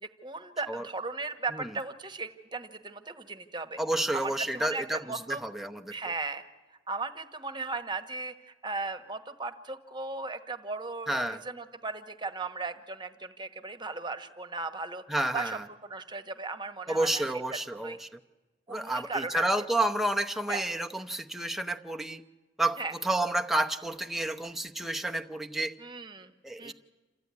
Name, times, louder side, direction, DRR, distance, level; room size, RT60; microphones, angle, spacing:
voice 1, 0.0-3.8 4.1-5.4 5.9-6.5 6.9-15.0 15.3-15.6 15.9-17.2 17.5-18.0 18.7-19.4 20.5-20.6 22.8-22.9 25.8-26.3 26.6-26.7, right 3 dB, 25° right, 10 dB, 1.2 m, -37 dB
voice 2, 3.8-5.9 11.1-11.4 15.1-15.6 16.9-18.1 18.7-22.2 22.6-25.7 26.4-26.7, right 1 dB, ahead, 3 dB, 0.7 m, -30 dB
27.5 x 14.0 x 9.6 m, 1.2 s
head